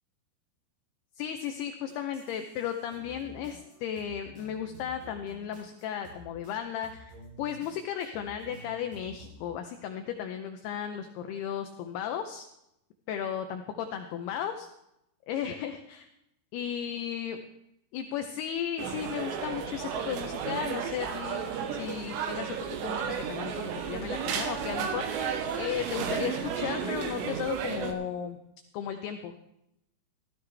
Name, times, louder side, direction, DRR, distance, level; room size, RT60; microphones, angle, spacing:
voice 1, 1.2-7.1 7.4-12.5 13.1-14.7 15.3-16.1 16.5-17.4 17.9-22.6 22.8-25.3 25.6-28.4 28.7-29.3, left 9 dB, 80° left, 6 dB, 2.4 m, -35 dB
sound 1, 1.9-6.6 6.8-9.4, right 1 dB, 50° right, 7.0 m, -51 dB
sound 2, 18.8-27.9, right 7 dB, 80° right, 3.2 m, -33 dB
14.5 x 13.5 x 3.3 m, 0.83 s
omnidirectional pair, 5.2 m